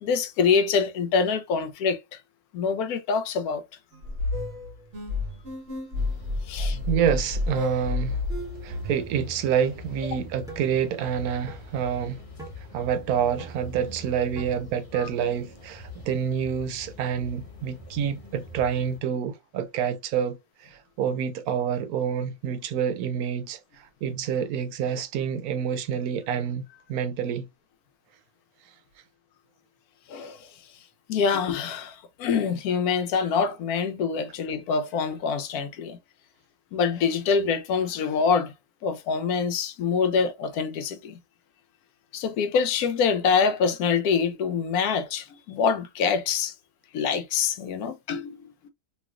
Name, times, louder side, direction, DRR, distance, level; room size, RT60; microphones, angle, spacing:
voice 1, 0.0-2.2 2.5-3.6 6.5-6.8 15.0-15.1 30.1-30.5 31.1-36.0 36.7-38.5 38.8-41.2 42.1-46.5 46.9-48.5, left 5 dB, 80° left, 1.1 m, -25 dB
sound 1, 3.9-9.1, left 3 dB, 55° right, 1.4 m, -30 dB
sound 2, 5.9-19.0, left 1 dB, 40° left, 0.5 m, -44 dB
voice 2, 6.9-8.2 8.6-12.2 12.6-26.6 26.9-27.5, right 8 dB, 75° right, 1.0 m, -28 dB
sound 3, 10.5-10.7 11.5-11.6 12.4-12.6 13.4-13.6 14.4-14.6, right 3 dB, 5° right, 0.7 m, -42 dB
3.1 x 2.7 x 2.4 m
omnidirectional pair, 1.6 m